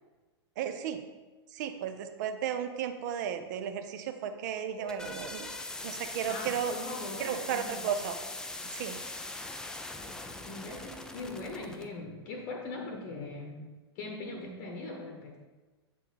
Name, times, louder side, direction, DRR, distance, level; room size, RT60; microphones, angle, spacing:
voice 1, 0.6-1.0 1.5-5.5 5.8-6.7 7.2-8.2 8.7-9.0, right 8 dB, 45° right, 8 dB, 0.6 m, -34 dB
sound 1, 4.6-11.9, left 2 dB, 5° left, 0.4 m, -41 dB
voice 2, 6.3-7.9 10.5-15.4, left 2 dB, 35° left, 2 dB, 0.9 m, -41 dB
7.5 x 4.0 x 4.2 m, 1.3 s
figure-of-eight pair, 100°, 14 cm